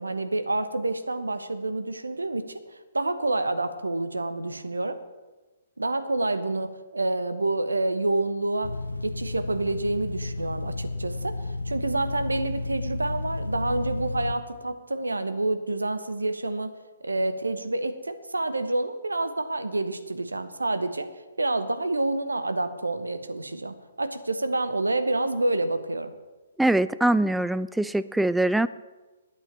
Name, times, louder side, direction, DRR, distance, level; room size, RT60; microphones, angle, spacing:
voice 1, 0.0-2.6 2.9-5.0 5.8-8.7 9.0-11.4 11.6-16.7 17.0-21.1 21.4-26.1, right 2 dB, 75° right, 10 dB, 1.0 m, -28 dB
sound 1, 8.6-14.3, left 2 dB, 75° left, 0.7 m, -32 dB
voice 2, 26.6-28.7, right 1 dB, 5° right, 15 dB, 0.3 m, -23 dB
9.3 x 8.4 x 8.5 m, 1.2 s
figure-of-eight pair, 125°, 0 cm